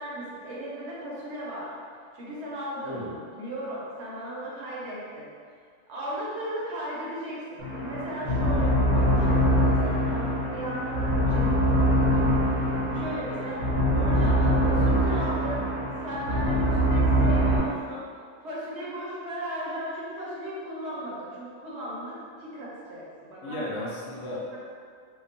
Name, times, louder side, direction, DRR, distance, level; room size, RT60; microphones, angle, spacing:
voice 1, 0.0-1.7 2.1-3.0 3.3-5.3 5.9-12.3 12.9-18.0 18.4-23.6, right 1 dB, 65° right, -6 dB, 0.9 m, -36 dB
voice 2, 2.8-3.2 23.4-24.6, left 1 dB, 70° left, -5 dB, 0.9 m, -34 dB
sound 1, 7.6-17.6, equal, 85° right, 1.2 m, -23 dB
2.9 x 2.0 x 2.5 m, 2.2 s
omnidirectional pair, 1.3 m